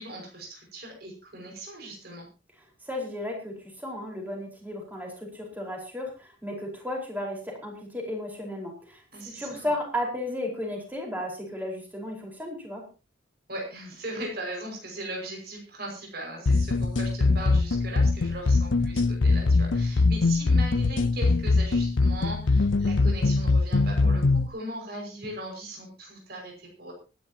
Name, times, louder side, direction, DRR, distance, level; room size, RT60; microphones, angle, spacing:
voice 1, 0.0-2.2 9.1-9.7 13.5-26.9, right 1 dB, 55° right, 1 dB, 5.8 m, -39 dB
voice 2, 2.8-12.8, left 1 dB, 10° right, 0 dB, 4.7 m, -34 dB
sound 1, 16.5-24.5, left 3 dB, 80° left, 0.6 m, -22 dB
24.5 x 10.5 x 2.9 m, 0.32 s
head